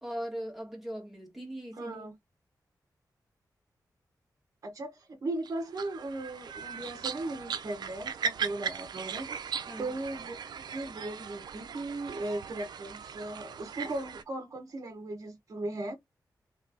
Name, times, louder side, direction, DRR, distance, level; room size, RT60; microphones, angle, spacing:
voice 1, 0.0-2.1 9.7-9.9, equal, ahead, 2.1 m, -39 dB
voice 2, 1.7-2.2 4.6-16.0, right 2 dB, 50° right, 1.2 m, -38 dB
sound 1, 5.4-14.2, right 7 dB, 85° right, 0.5 m, -38 dB
3.4 x 3.2 x 3.9 m
wide cardioid pair, 135°, 7 cm